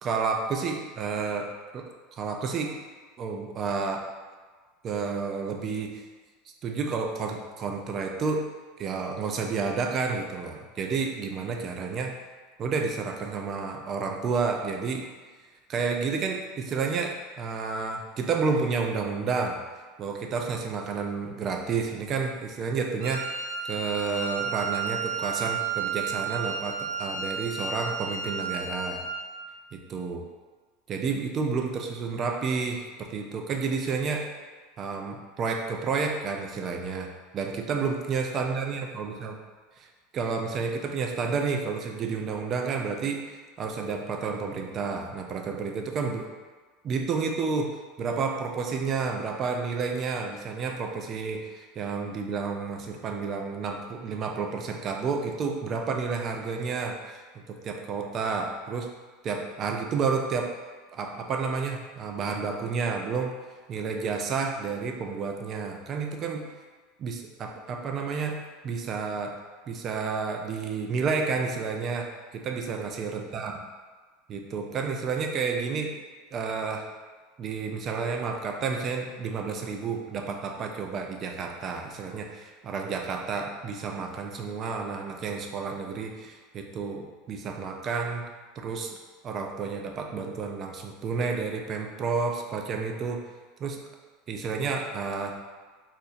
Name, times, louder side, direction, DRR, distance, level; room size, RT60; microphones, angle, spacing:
voice 1, 0.0-1.5 1.7-1.9 2.2-2.8 3.2-4.1 4.8-6.0 6.6-8.5 8.8-12.2 12.6-15.1 15.7-19.6 20.0-23.3 23.7-29.0 29.7-30.3 30.9-34.3 34.8-39.4 39.8-39.9 40.1-46.3 46.8-57.2 57.5-58.9 59.2-60.5 60.9-63.3 63.7-66.4 67.0-69.4 69.7-73.6 74.3-75.9 76.3-76.9 77.4-88.3 88.6-89.0 89.2-93.2 93.6-93.8 94.3-95.4, right 5 dB, 30° right, 3 dB, 0.3 m, -30 dB
Wind instrument woodwind instrument, 23.0-29.3, right 5 dB, 70° right, 0.6 m, -32 dB
2.8 x 2.5 x 4.0 m, 1.4 s
supercardioid pair, 160°, 0 cm